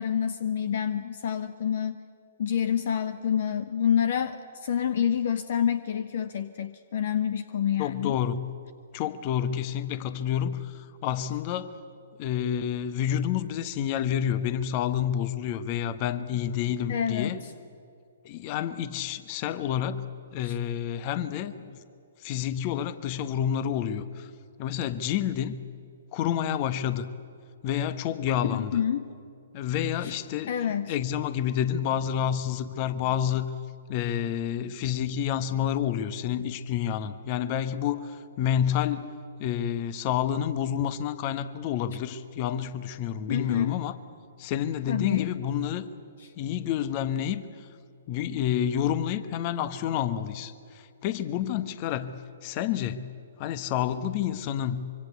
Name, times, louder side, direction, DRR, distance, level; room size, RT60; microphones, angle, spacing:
voice 1, 0.0-2.0 2.4-8.1 16.9-17.3 20.4-20.6 28.5-29.1 30.0-30.1 30.5-30.9 43.3-43.8 44.9-45.3, left 8 dB, 55° left, 12 dB, 1.0 m, -27 dB
voice 2, 7.8-8.5 8.9-11.7 12.2-17.4 18.2-21.8 22.2-24.3 24.6-25.6 26.1-27.1 27.6-28.8 29.5-33.5 33.9-39.1 39.4-43.9 44.4-45.9 46.4-47.7 48.1-52.1 52.4-54.9, left 9 dB, 35° left, 13 dB, 1.3 m, -29 dB
25.0 x 24.5 x 8.2 m, 2.4 s
figure-of-eight pair, 120°, 0 cm